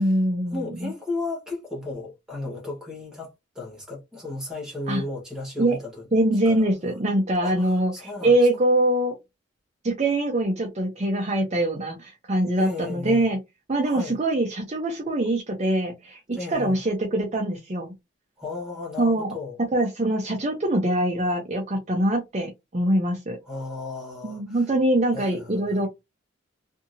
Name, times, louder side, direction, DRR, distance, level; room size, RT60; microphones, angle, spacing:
voice 1, 0.0-0.9 4.9-5.0 5.6-5.8 6.1-9.2 9.8-13.4 13.7-17.9 19.0-19.3 19.7-23.4 24.2-25.9, right 1 dB, 35° right, 0.6 m, -23 dB
voice 2, 0.5-6.1 6.4-6.7 7.4-8.3 12.6-13.3 13.8-14.1 16.3-16.8 18.4-19.6 23.5-24.7 25.1-25.9, left 2 dB, 5° right, 1.2 m, -35 dB
2.7 x 2.6 x 2.6 m
head